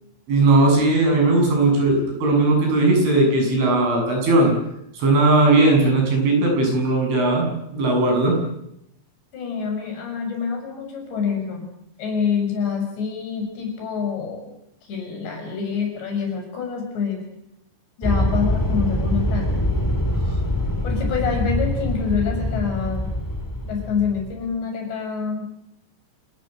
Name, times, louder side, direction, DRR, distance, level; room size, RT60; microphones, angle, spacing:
voice 1, 0.3-4.5 4.9-8.4, right 2 dB, 90° right, 2 dB, 10.0 m, -18 dB
voice 2, 9.3-11.7 12.0-14.5 14.8-17.3 18.0-19.6 20.8-23.1 23.6-25.5, left 6 dB, 65° left, 3 dB, 8.8 m, -26 dB
sound 1, 18.0-24.5, equal, 10° left, 1.1 m, -24 dB
28.0 x 20.0 x 8.1 m, 0.79 s
omnidirectional pair, 5.4 m